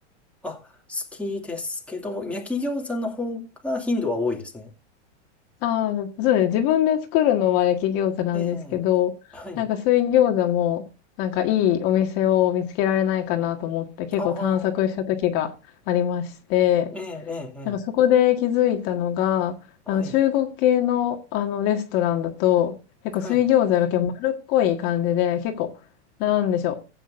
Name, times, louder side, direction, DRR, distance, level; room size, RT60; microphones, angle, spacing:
voice 1, 0.4-4.7 8.3-8.9 9.3-9.6 14.2-14.7 16.9-17.8 19.9-20.1 23.2-23.4, left 2 dB, 5° left, 2.5 m, -31 dB
voice 2, 5.6-9.1 9.6-10.8 11.2-15.5 15.9-16.9 17.7-19.6 19.9-22.8 23.1-25.7 26.2-26.8, left 11 dB, 45° left, 1.8 m, -22 dB
16.5 x 9.0 x 2.6 m
supercardioid pair, 140°, 34 cm